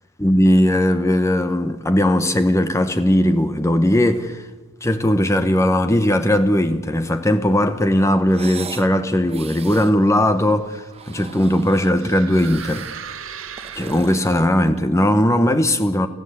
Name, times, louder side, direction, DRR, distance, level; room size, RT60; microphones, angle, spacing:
voice 1, 0.2-4.5 4.8-12.9 13.7-16.1, left 1 dB, 15° left, 1.0 m, -18 dB
sound 1, 8.3-8.9 9.3-9.9 10.8-12.0 12.3-13.0 13.4-14.9, right 5 dB, 30° right, 1.1 m, -38 dB
sound 2, 10.0-14.5, right 7 dB, 65° right, 1.4 m, -38 dB
29.0 x 15.5 x 8.3 m
head